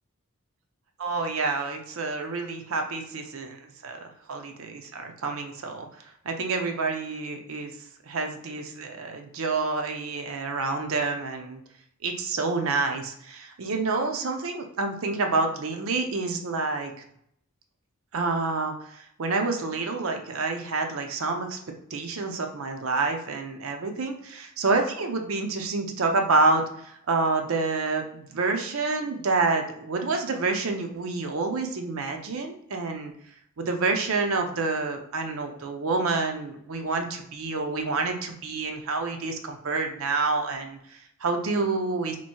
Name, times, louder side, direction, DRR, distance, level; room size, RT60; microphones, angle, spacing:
voice 1, 1.0-4.0 4.3-5.9 6.2-7.7 8.1-11.6 12.0-16.9 18.1-21.6 21.9-33.1 33.6-42.2, right 3 dB, 70° right, 4 dB, 0.6 m, -28 dB
3.0 x 2.6 x 4.3 m, 0.71 s
head